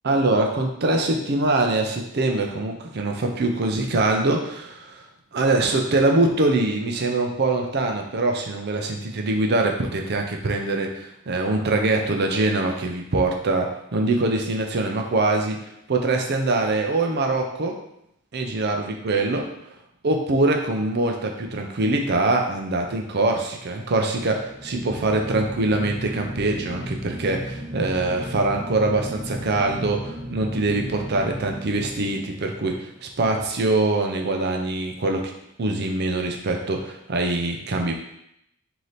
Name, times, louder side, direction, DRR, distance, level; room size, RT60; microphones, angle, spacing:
voice 1, 0.0-5.0 5.3-15.6 15.9-17.8 18.3-19.4 20.0-35.3 35.6-37.9, right 2 dB, 50° right, 3 dB, 0.5 m, -23 dB
sound 1, 24.3-32.7, equal, 10° right, 1.2 m, -35 dB
3.2 x 2.8 x 4.0 m, 0.77 s
head